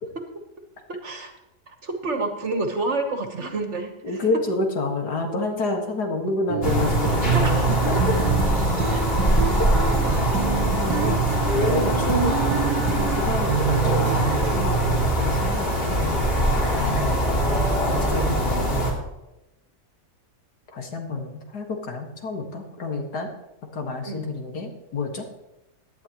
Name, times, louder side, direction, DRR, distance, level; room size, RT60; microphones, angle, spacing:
voice 1, 0.9-1.3 1.7-4.2 7.3-7.8 24.0-24.2, right 2 dB, 45° right, 5 dB, 1.4 m, -29 dB
voice 2, 4.0-7.5 7.9-8.2 8.9-9.0 10.8-11.2 11.4-12.4 12.8-16.2 16.7-17.2 18.0-18.8 20.7-23.3 23.7-25.3, left 3 dB, 70° left, 2 dB, 2.2 m, -29 dB
sound 1, 6.5-14.6, right 7 dB, 70° right, 1.4 m, -27 dB
sound 2, 6.6-18.9, right 1 dB, 35° left, 2.9 m, -22 dB
17.5 x 10.5 x 3.0 m, 0.92 s
omnidirectional pair, 1.8 m